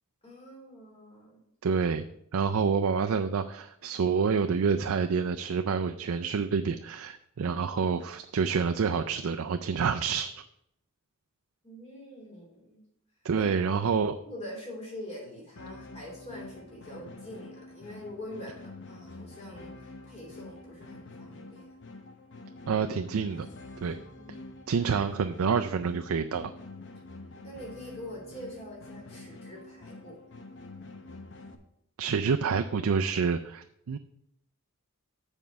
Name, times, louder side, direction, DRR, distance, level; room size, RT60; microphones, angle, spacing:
voice 1, 0.2-1.4 11.6-12.8 13.3-13.5 13.8-21.6 23.9-24.5 27.4-30.2, left 1 dB, 30° left, -3 dB, 3.1 m, -44 dB
voice 2, 1.6-2.0 2.3-10.4 13.2-14.2 22.7-23.5 23.8-24.0 24.7-26.5 32.0-34.0, right 5 dB, 70° right, 6 dB, 0.4 m, -28 dB
sound 1, 15.6-31.6, left 2 dB, 55° left, 0.9 m, -47 dB
7.4 x 4.5 x 6.8 m, 0.75 s
head